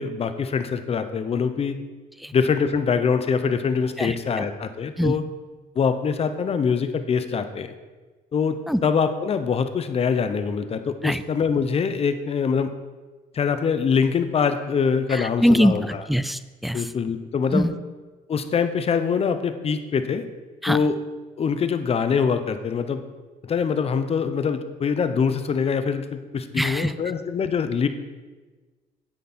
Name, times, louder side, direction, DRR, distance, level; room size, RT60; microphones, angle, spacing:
voice 1, 0.0-1.8 2.3-5.2 5.8-7.7 8.3-12.7 13.3-15.8 16.7-17.7 18.3-20.2 20.7-21.0 21.4-23.0 23.4-27.9, left 6 dB, 35° left, 10 dB, 0.8 m, -24 dB
voice 2, 4.0-4.4 5.0-5.2 8.7-8.8 11.0-11.2 15.1-16.9 17.5-17.8 20.6-20.8 26.6-26.9, equal, ahead, 14 dB, 0.4 m, -23 dB
10.0 x 8.2 x 4.3 m, 1.3 s
cardioid pair, 110°, 17 cm